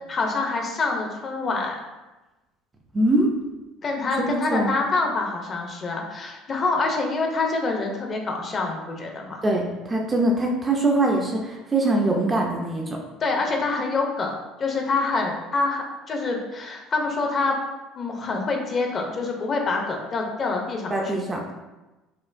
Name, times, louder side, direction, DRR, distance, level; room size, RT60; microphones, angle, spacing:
voice 1, 0.1-1.7 3.8-9.4 13.2-17.6 18.0-20.9, left 3 dB, 30° left, 2 dB, 0.6 m, -26 dB
voice 2, 2.9-3.3 4.5-4.7 9.4-13.0 20.9-21.6, right 2 dB, 15° right, 0 dB, 0.4 m, -23 dB
4.3 x 2.5 x 2.5 m, 1.1 s
cardioid pair, 145°, 0 cm